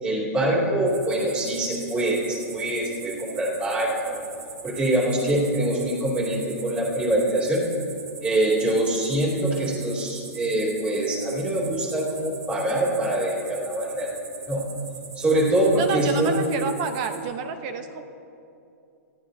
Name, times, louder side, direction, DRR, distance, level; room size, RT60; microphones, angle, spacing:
voice 1, 0.0-4.2 4.6-7.7 8.2-14.1 14.5-14.6 15.2-16.4, right 1 dB, 15° right, -3 dB, 2.7 m, -24 dB
sound 1, 0.9-17.2, right 5 dB, 90° right, 3.6 m, -42 dB
voice 2, 15.8-18.0, right 5 dB, 30° right, 8 dB, 0.9 m, -29 dB
25.5 x 14.0 x 2.7 m, 2.6 s
hypercardioid pair, 165°, 9 cm